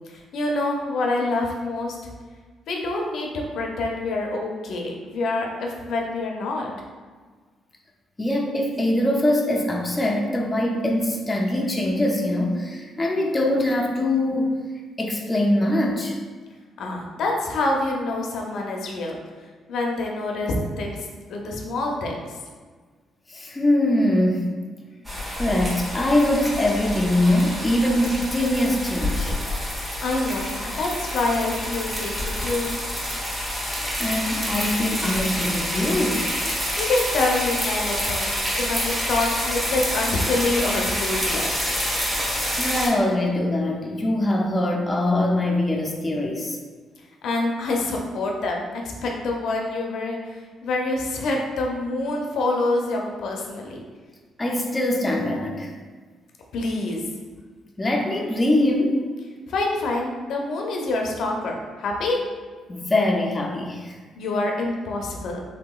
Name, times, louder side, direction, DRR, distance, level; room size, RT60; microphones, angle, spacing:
voice 1, 0.1-2.0 2.7-6.7 16.8-19.2 19.7-21.0 21.3-22.3 30.0-32.1 32.4-32.7 36.8-41.5 47.2-53.8 56.5-57.0 59.5-62.2 64.2-65.4, left 2 dB, 75° left, 0 dB, 0.5 m, -26 dB
voice 2, 8.2-14.5 15.0-16.2 23.3-24.5 25.4-29.3 34.0-36.3 42.5-46.6 54.4-55.7 57.8-59.0 62.7-64.0, left 1 dB, 20° left, 0 dB, 0.4 m, -23 dB
sound 1, 25.0-42.9, equal, 10° right, 0.9 m, -27 dB
3.2 x 2.8 x 2.3 m, 1.5 s
cardioid pair, 90°, 0 cm